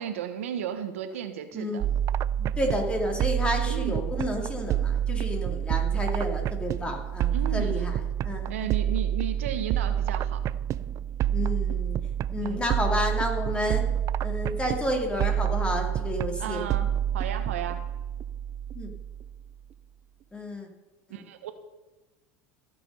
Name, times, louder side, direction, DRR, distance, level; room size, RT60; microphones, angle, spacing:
voice 1, 0.0-1.8 3.7-4.0 7.3-7.9 8.5-10.4 12.4-12.7 16.4-17.8 21.1-21.5, right 9 dB, 90° right, 8 dB, 1.2 m, -34 dB
sound 1, 1.8-19.4, right 10 dB, 45° right, 0.4 m, -28 dB
voice 2, 2.4-8.0 8.2-8.5 11.3-12.0 12.3-13.9 14.2-16.6 18.7-18.9 20.3-20.7, left 1 dB, 15° left, 2 dB, 2.5 m, -30 dB
15.0 x 7.0 x 5.5 m, 1.1 s
supercardioid pair, 100°, 7 cm